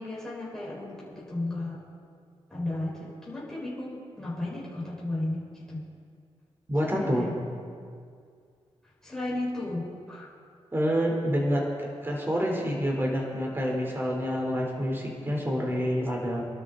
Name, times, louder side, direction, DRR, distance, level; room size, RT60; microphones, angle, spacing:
voice 1, 0.0-1.8 2.5-5.8 7.0-7.6 9.0-10.3, left 2 dB, 5° left, -6 dB, 4.7 m, -34 dB
voice 2, 6.7-7.3 10.7-16.4, equal, 20° right, -1 dB, 3.2 m, -27 dB
23.0 x 12.0 x 3.8 m, 2.2 s
wide cardioid pair, 110°, 11 cm